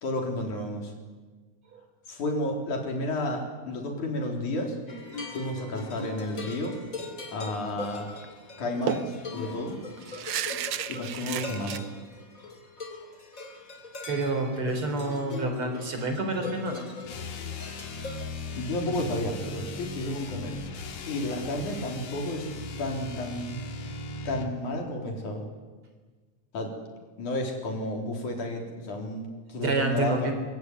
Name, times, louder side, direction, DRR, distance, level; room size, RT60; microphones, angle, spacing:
voice 1, 0.0-0.9 2.1-4.8 5.3-6.8 7.3-8.1 8.6-9.8 10.9-11.9 18.6-20.6 21.1-22.5 22.8-23.6 24.3-25.5 26.5-26.7 27.2-30.3, left 1 dB, 90° left, 2 dB, 5.2 m, -31 dB
sound 1, 4.9-18.2, left 3 dB, 25° left, 3.2 m, -41 dB
sound 2, 7.7-7.9 8.2-8.3 8.9-11.8, right 10 dB, 65° right, 1.4 m, -33 dB
voice 2, 13.8-16.8 29.6-30.3, right 2 dB, 45° right, 5 dB, 4.5 m, -29 dB
sound 3, 17.0-24.6, left 2 dB, 65° left, 3.2 m, -38 dB
23.0 x 23.0 x 9.5 m, 1.4 s
omnidirectional pair, 3.4 m